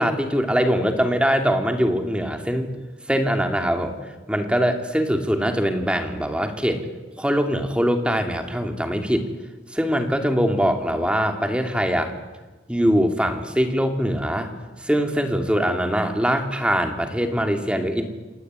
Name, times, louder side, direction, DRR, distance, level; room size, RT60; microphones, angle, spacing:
voice 1, 0.0-2.7 3.1-3.9 4.3-6.8 7.2-9.2 9.7-12.1 12.7-14.5 14.8-18.0, equal, 5° right, 5 dB, 2.8 m, -22 dB
27.5 x 19.0 x 9.6 m, 1.2 s
head